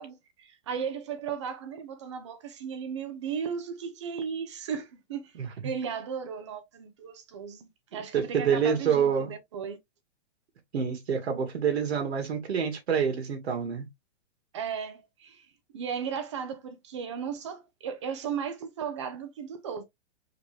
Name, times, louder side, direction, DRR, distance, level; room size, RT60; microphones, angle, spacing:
voice 1, 0.0-5.4 5.6-9.8 14.5-15.5 15.7-19.8, right 7 dB, 25° right, 0.7 m, -36 dB
voice 2, 8.1-9.3 10.7-13.9, right 7 dB, 65° right, 2.1 m, -27 dB
4.9 x 3.2 x 3.4 m
hypercardioid pair, 175°, 35 cm